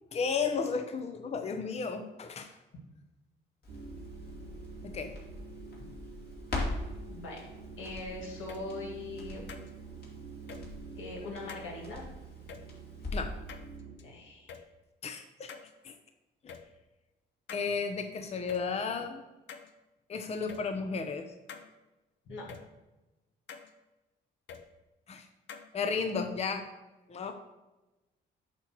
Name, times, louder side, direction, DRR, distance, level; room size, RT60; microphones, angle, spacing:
voice 1, 0.1-2.6 4.8-5.1 13.1-13.3 15.0-15.5 15.8-15.9 16.4-16.5 17.5-19.2 20.1-21.3 25.1-25.3 25.7-26.6 27.1-27.3, left 5 dB, 35° left, 7 dB, 0.6 m, -33 dB
Crackle, 3.6-13.4 13.7-13.8, left 2 dB, 50° left, 2.4 m, -42 dB
sound 1, 3.7-14.0, right 5 dB, 70° right, 1.4 m, -48 dB
voice 2, 7.1-7.4 7.8-9.4 11.0-12.1 14.0-14.5 22.3-22.5, left 2 dB, 85° left, -1 dB, 2.0 m, -41 dB
sound 2, 8.5-8.6 9.5-9.7 10.5-10.6 11.5-11.7 12.5-12.6 13.5-14.0 14.5-14.6 15.5-15.7 16.5-16.6 17.5-17.7 18.5-18.6 19.5-19.7 20.5-20.6 21.5-21.7 22.5-22.6 23.5-23.7 24.5-24.6 25.5-25.7, left 7 dB, 70° left, 0.7 m, -45 dB
8.3 x 2.9 x 6.0 m, 1.1 s
cardioid pair, 90°, 20 cm